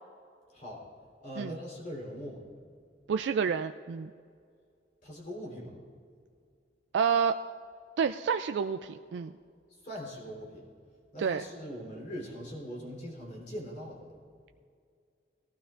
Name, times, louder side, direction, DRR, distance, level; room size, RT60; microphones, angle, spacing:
voice 1, 0.5-0.8 1.2-2.5 5.0-5.8 9.8-10.7 11.1-14.0, equal, 45° left, -4 dB, 3.7 m, -41 dB
voice 2, 3.1-4.1 6.9-7.4 8.0-9.3 11.2-11.4, right 6 dB, 75° right, 8 dB, 0.3 m, -29 dB
19.0 x 14.5 x 2.5 m, 2.2 s
head